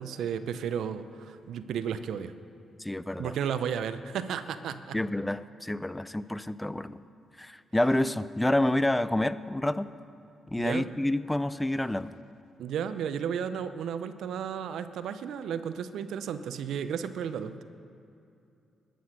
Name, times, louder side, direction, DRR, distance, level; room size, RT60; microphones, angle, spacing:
voice 1, 0.0-2.3 3.2-5.0 10.6-10.9 12.6-17.6, right 8 dB, 75° right, 12 dB, 0.6 m, -33 dB
voice 2, 2.8-3.3 4.9-7.0 7.4-9.9 10.5-12.1, left 1 dB, 10° left, 15 dB, 0.5 m, -28 dB
13.0 x 10.0 x 6.6 m, 2.7 s
hypercardioid pair, 45°, 0 cm